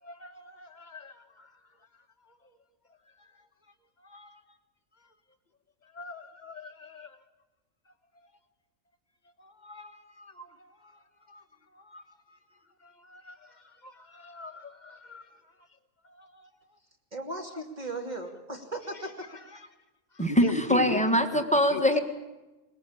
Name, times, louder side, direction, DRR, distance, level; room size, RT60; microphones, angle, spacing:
voice 1, 0.0-1.5 2.3-2.5 3.2-3.5 4.0-4.4 5.8-7.2 9.4-11.4 11.7-12.4 12.8-15.3 16.0-16.5 17.5-17.6 19.5-19.7 20.1-21.0 21.3-21.4 21.7-21.8, left 2 dB, 30° left, 1.5 m, -41 dB
voice 2, 17.1-19.3, right 2 dB, 30° right, 3.0 m, -37 dB
voice 3, 20.2-22.0, equal, 5° left, 1.6 m, -23 dB
21.0 x 20.5 x 8.7 m
omnidirectional pair, 1.5 m